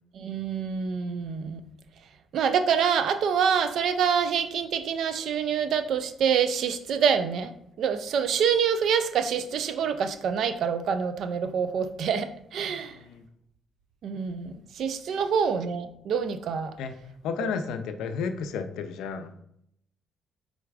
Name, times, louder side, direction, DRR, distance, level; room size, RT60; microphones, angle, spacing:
voice 1, 0.1-1.6 2.3-13.0 14.0-16.7 17.4-17.5, right 7 dB, 70° right, 10 dB, 0.4 m, -26 dB
voice 2, 12.9-13.2 16.8-16.9 17.2-19.3, left 6 dB, 80° left, 9 dB, 0.4 m, -32 dB
4.5 x 3.8 x 2.3 m, 0.72 s
supercardioid pair, 60°, 0 cm